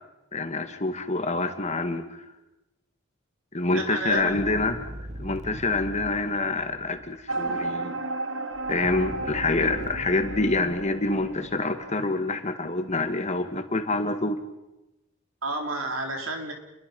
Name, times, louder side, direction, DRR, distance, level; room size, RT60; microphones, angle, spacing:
voice 1, 0.3-2.2 3.5-4.8 5.2-7.9 8.7-14.4, left 2 dB, 35° left, 7 dB, 2.0 m, -26 dB
voice 2, 3.7-4.4 15.4-16.5, right 2 dB, 85° right, 3 dB, 4.2 m, -30 dB
sound 1, 4.1-7.3 8.5-11.8, equal, 35° right, 1.1 m, -41 dB
sound 2, 7.3-12.8, right 2 dB, 65° right, 1.4 m, -34 dB
29.0 x 23.0 x 5.5 m, 0.96 s
head